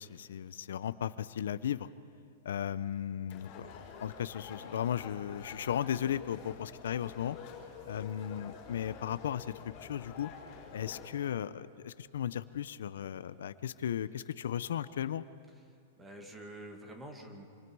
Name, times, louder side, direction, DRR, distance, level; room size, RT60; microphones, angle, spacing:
voice 1, 0.0-1.9 2.4-7.4 7.9-10.3 10.7-15.2, left 9 dB, 80° left, 15 dB, 0.6 m, -36 dB
sound 1, 3.3-11.1, left 6 dB, 35° left, 4.1 m, -49 dB
voice 2, 15.5-17.5, right 1 dB, 10° right, 3 dB, 2.2 m, -48 dB
27.0 x 24.5 x 4.8 m, 2.4 s
supercardioid pair, 160°, 0 cm